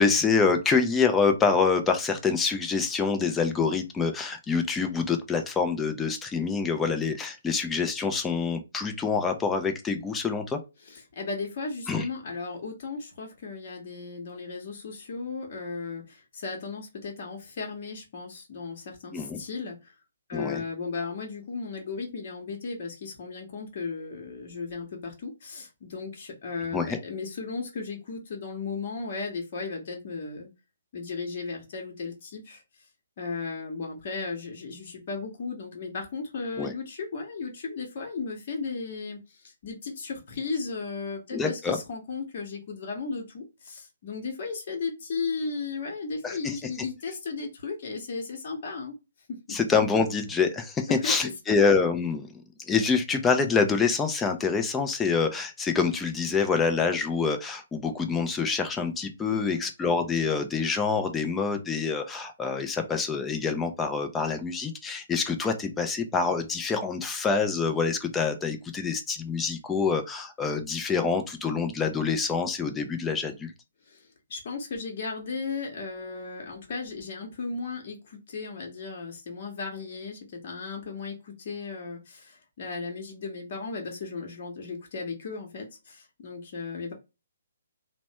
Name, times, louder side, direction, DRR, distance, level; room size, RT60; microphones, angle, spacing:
voice 1, 0.0-10.6 11.9-12.1 19.1-19.4 20.3-20.6 26.7-27.0 36.6-36.7 41.3-41.8 46.2-46.6 49.5-73.5, left 5 dB, 10° left, 6 dB, 0.5 m, -26 dB
voice 2, 10.9-19.9 20.3-30.5 30.9-32.6 33.2-49.0 50.9-51.1 59.3-59.6 73.9-86.9, left 4 dB, 50° left, 1 dB, 1.0 m, -35 dB
3.0 x 2.2 x 2.8 m, 0.26 s
figure-of-eight pair, 135°, 0 cm